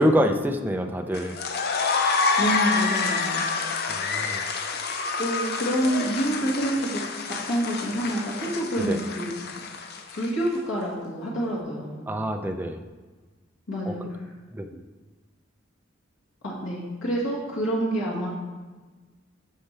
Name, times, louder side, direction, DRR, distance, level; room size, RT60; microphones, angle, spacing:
voice 1, 0.0-1.4 3.9-4.4 8.8-9.0 12.1-12.8 13.9-14.0 14.5-14.7, equal, 10° right, 5 dB, 0.5 m, -25 dB
sound 1, 1.1-10.5, left 4 dB, 55° left, 0.6 m, -28 dB
voice 2, 2.4-3.5 5.2-7.0 7.5-9.3 10.1-12.1 13.7-14.3 16.4-18.3, right 1 dB, 90° left, -5 dB, 1.8 m, -27 dB
13.0 x 4.4 x 3.3 m, 1.3 s
head